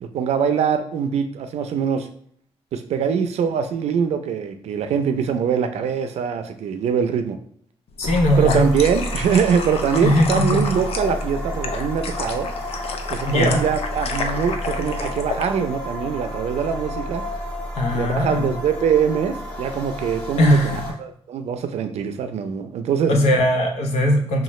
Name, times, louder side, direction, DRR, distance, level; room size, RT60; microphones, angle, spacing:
voice 1, 0.0-2.1 2.7-7.4 8.4-12.5 13.1-17.2 17.9-23.1, right 7 dB, 80° right, 8 dB, 0.5 m, -23 dB
voice 2, 8.0-8.8 10.0-10.7 13.2-13.6 17.7-18.5 20.4-20.8 23.1-24.4, left 1 dB, 80° left, 2 dB, 0.9 m, -19 dB
sound 1, 8.0-15.5, left 5 dB, 65° left, 0.5 m, -30 dB
sound 2, 8.0-20.9, equal, 10° left, 1.0 m, -31 dB
5.6 x 2.4 x 3.1 m, 0.62 s
cardioid pair, 125°, 11 cm